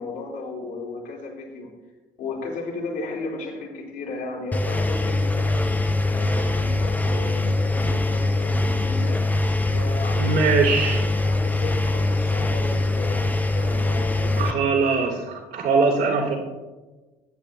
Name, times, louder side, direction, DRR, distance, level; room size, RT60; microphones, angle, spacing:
voice 1, 0.0-1.7 2.2-5.7 6.1-9.2 9.7-10.4 11.2-14.6, left 3 dB, 65° left, -2 dB, 3.4 m, -34 dB
Engine, 4.5-14.5, left 2 dB, 10° left, 0.7 m, -23 dB
voice 2, 10.2-11.0 14.4-16.4, right 4 dB, 60° right, -1 dB, 2.4 m, -21 dB
20.5 x 8.8 x 2.2 m, 1.2 s
figure-of-eight pair, 50°, 20 cm